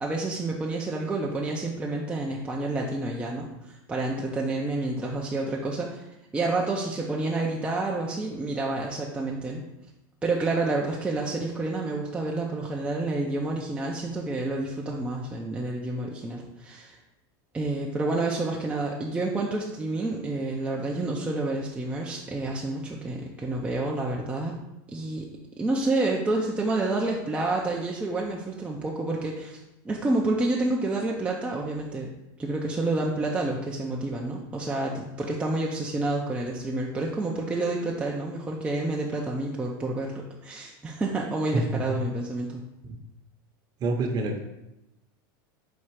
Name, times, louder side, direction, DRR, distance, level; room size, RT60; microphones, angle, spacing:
voice 1, 0.0-6.0 6.3-9.6 10.2-17.0 17.5-24.6 24.9-25.3 25.6-32.1 32.4-42.6, right 2 dB, 10° right, -2 dB, 0.4 m, -29 dB
voice 2, 41.5-41.9 42.8-43.0 43.8-44.4, right 2 dB, 35° right, 3 dB, 0.8 m, -27 dB
4.3 x 2.4 x 4.6 m, 0.90 s
supercardioid pair, 130°, 12 cm